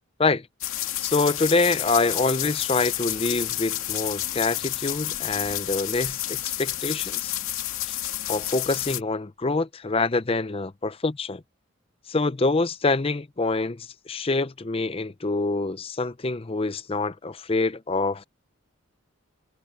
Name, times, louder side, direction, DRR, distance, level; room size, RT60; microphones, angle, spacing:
sound 1, 0.6-9.0, left 13 dB, 85° left, 2.4 m, -30 dB
voice 1, 1.0-7.3 7.9-8.0 8.3-11.4 12.1-18.2, left 3 dB, 25° left, 0.6 m, -26 dB
head